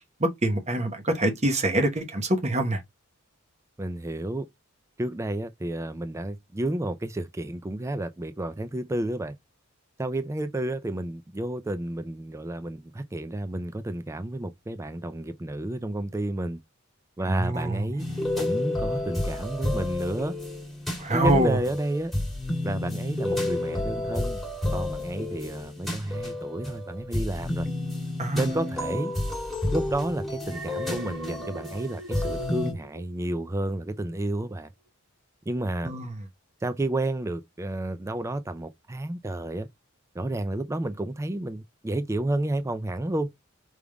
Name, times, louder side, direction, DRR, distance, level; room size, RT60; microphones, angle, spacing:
voice 1, 0.2-2.8 17.3-17.8 21.0-21.6 28.2-28.5 35.8-36.1, right 1 dB, 35° right, 1.1 m, -25 dB
voice 2, 3.8-4.5 5.0-9.4 10.0-16.6 17.2-18.0 18.4-20.4 21.1-22.1 22.6-24.4 24.7-27.7 28.3-29.1 29.7-34.7 35.5-35.9 36.6-39.7 40.1-43.3, right 1 dB, 15° right, 0.4 m, -31 dB
sound 1, 18.0-32.7, left 1 dB, ahead, 1.8 m, -30 dB
Alarm, 30.4-33.7 34.1-34.4, right 1 dB, 70° right, 2.2 m, -42 dB
4.8 x 3.5 x 2.3 m
head